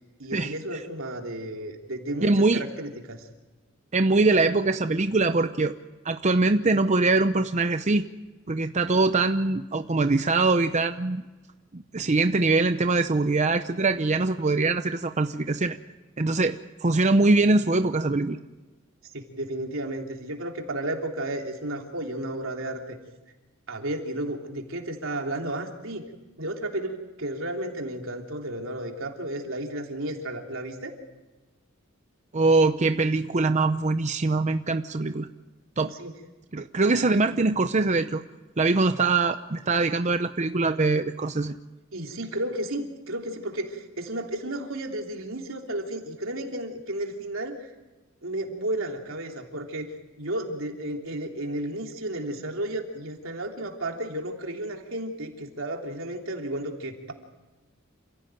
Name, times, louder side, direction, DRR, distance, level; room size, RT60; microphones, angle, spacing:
voice 1, 0.2-3.3 19.0-23.0 23.7-26.0 26.4-30.9 35.8-36.1 41.9-47.6 48.2-49.9 50.2-57.1, right 1 dB, 80° right, 2 dB, 3.3 m, -33 dB
voice 2, 2.2-2.6 3.9-5.7 6.0-8.1 8.5-11.2 11.7-15.8 16.2-18.4 32.3-35.3 35.8-35.9 36.5-38.2 38.6-41.6, right 3 dB, 35° right, 8 dB, 0.7 m, -23 dB
28.0 x 16.5 x 9.1 m, 1.2 s
head